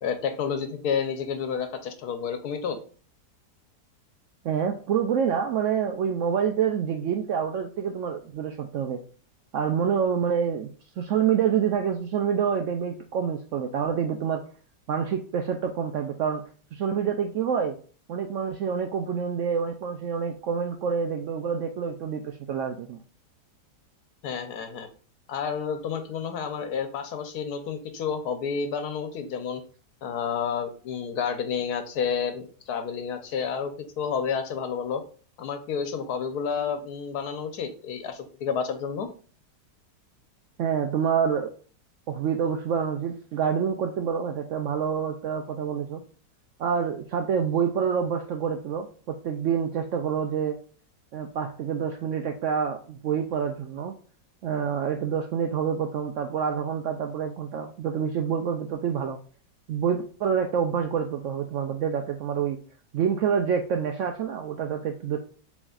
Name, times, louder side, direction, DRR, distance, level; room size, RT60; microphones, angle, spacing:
voice 1, 0.0-2.8 24.2-24.9 25.3-29.6 30.0-33.7 34.0-35.0 35.4-39.1, left 6 dB, 65° left, 7 dB, 1.2 m, -30 dB
voice 2, 4.4-9.0 9.5-10.7 11.0-14.4 14.9-16.4 16.7-17.8 18.1-23.0 40.6-41.5 42.1-46.0 46.6-50.6 51.1-53.9 54.4-59.2 59.7-62.6 62.9-65.2, right 7 dB, 80° right, 5 dB, 0.7 m, -27 dB
7.0 x 3.1 x 2.3 m, 0.41 s
omnidirectional pair, 1.8 m